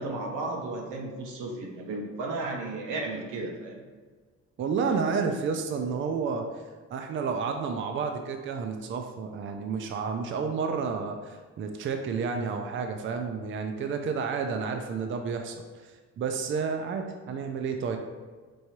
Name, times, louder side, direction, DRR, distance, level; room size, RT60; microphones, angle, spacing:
voice 1, 0.0-3.9, right 2 dB, 90° right, 0 dB, 0.8 m, -34 dB
voice 2, 4.6-6.5 6.9-18.0, right 5 dB, 40° right, 5 dB, 0.4 m, -31 dB
4.6 x 2.7 x 2.9 m, 1.4 s
cardioid pair, 90°, 30 cm